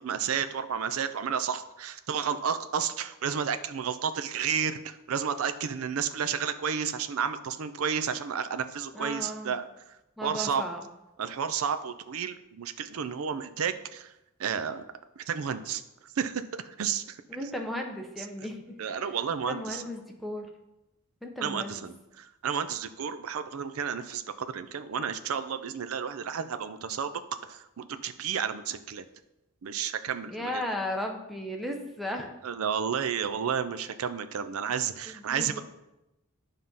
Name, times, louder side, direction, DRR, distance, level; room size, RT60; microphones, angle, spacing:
voice 1, 0.0-9.7 10.2-10.6 11.2-14.1 14.4-14.8 15.2-15.8 16.2-17.2 18.8-19.8 21.4-27.2 27.5-29.0 29.6-30.6 32.4-35.6, right 7 dB, 90° right, 11 dB, 0.5 m, -31 dB
voice 2, 8.9-9.6 10.2-10.9 17.3-18.8 19.5-20.5 21.2-21.8 30.3-32.3 35.1-35.6, left 1 dB, ahead, 2 dB, 0.8 m, -35 dB
9.5 x 3.6 x 5.5 m, 0.94 s
head